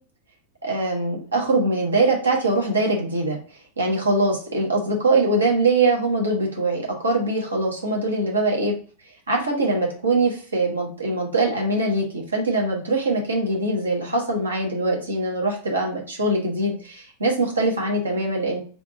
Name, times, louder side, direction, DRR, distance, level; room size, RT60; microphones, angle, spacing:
voice 1, 0.6-3.4 3.8-8.8 9.3-18.6, right 2 dB, 75° right, 0 dB, 1.1 m, -22 dB
3.4 x 2.5 x 3.9 m, 0.41 s
figure-of-eight pair, 90°, 0 cm